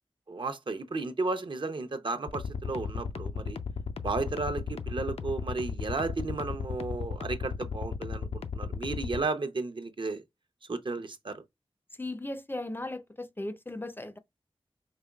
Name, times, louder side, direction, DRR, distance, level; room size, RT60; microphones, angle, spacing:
voice 1, 0.3-3.6 4.0-8.3 8.5-10.2 10.7-11.4, right 3 dB, 55° right, 0.7 m, -33 dB
sound 1, 2.3-9.3, left 5 dB, 80° left, 0.5 m, -35 dB
voice 2, 12.0-14.2, left 2 dB, 20° left, 0.5 m, -37 dB
5.0 x 3.0 x 2.3 m
wide cardioid pair, 60°, 10 cm